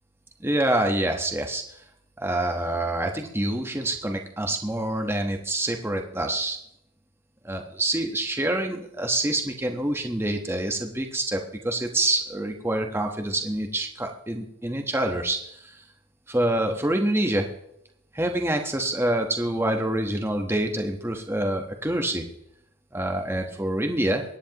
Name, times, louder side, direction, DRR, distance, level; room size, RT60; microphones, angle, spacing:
voice 1, 0.4-1.6 2.2-6.6 7.4-15.7 16.3-17.5 18.1-22.2 22.9-24.2, right 1 dB, 10° right, 3 dB, 1.1 m, -26 dB
24.0 x 9.9 x 3.0 m, 0.76 s
head